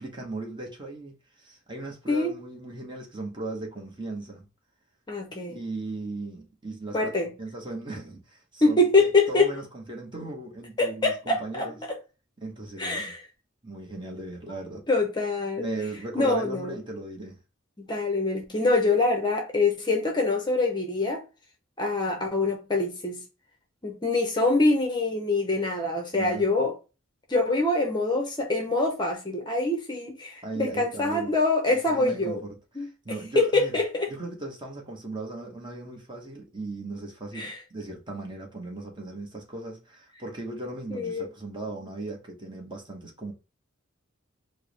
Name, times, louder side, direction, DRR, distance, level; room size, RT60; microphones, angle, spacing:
voice 1, 0.0-4.5 5.5-7.1 7.4-11.8 12.4-13.1 13.6-14.8 15.6-17.4 26.1-26.5 30.4-31.3 31.7-33.8 34.1-43.3, right 2 dB, 25° right, 0.9 m, -37 dB
voice 2, 5.1-5.6 6.9-7.3 8.6-9.5 10.8-12.0 12.8-13.2 14.9-15.7 16.1-16.8 17.8-21.2 21.8-23.2 23.8-26.7 27.3-32.4 32.8-32.9 33.3-34.1 37.3-37.6 40.9-41.3, left 2 dB, 20° left, 0.6 m, -25 dB
4.4 x 2.0 x 3.2 m
head